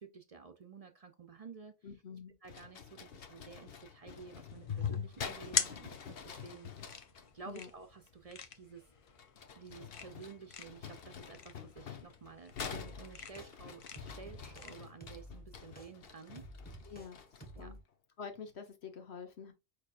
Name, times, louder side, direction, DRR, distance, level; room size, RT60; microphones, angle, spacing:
voice 1, 0.0-1.8 2.4-6.7 7.3-8.8 9.6-16.5 17.5-17.8, right 5 dB, 45° right, 0.6 m, -52 dB
voice 2, 1.8-2.4 7.4-7.7 16.8-17.2 17.6-17.8 18.2-19.5, left 6 dB, 85° left, 1.4 m, -47 dB
sound 1, 2.4-7.3 9.0-17.6, left 7 dB, 70° left, 1.0 m, -48 dB
sound 2, 4.5-14.8, left 7 dB, 40° left, 0.5 m, -41 dB
sound 3, 12.7-13.5 13.9-14.7 15.0-17.1 17.4-17.8, right 1 dB, 10° left, 1.1 m, -51 dB
4.8 x 4.6 x 2.4 m
omnidirectional pair, 1.1 m